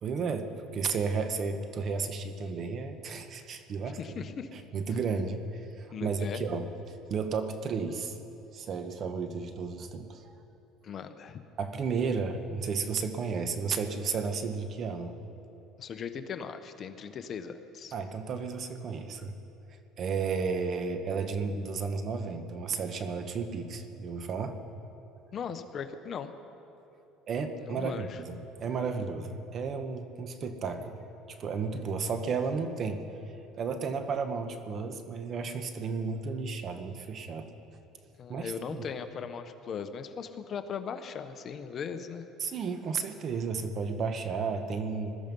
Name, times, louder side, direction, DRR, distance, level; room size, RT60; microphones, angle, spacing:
voice 1, 0.0-4.2 4.5-8.2 8.5-10.2 11.6-15.2 17.9-19.3 20.0-24.6 27.3-31.0 31.3-33.0 33.6-37.5 38.3-38.9 42.4-45.2, right 5 dB, 45° right, 8 dB, 1.2 m, -33 dB
voice 2, 4.0-4.5 5.9-6.4 10.8-11.4 15.8-17.9 25.3-26.3 27.6-28.2 38.2-42.2, left 6 dB, 40° left, 9 dB, 0.9 m, -38 dB
20.0 x 12.5 x 5.4 m, 3.0 s
cardioid pair, 120°, 0 cm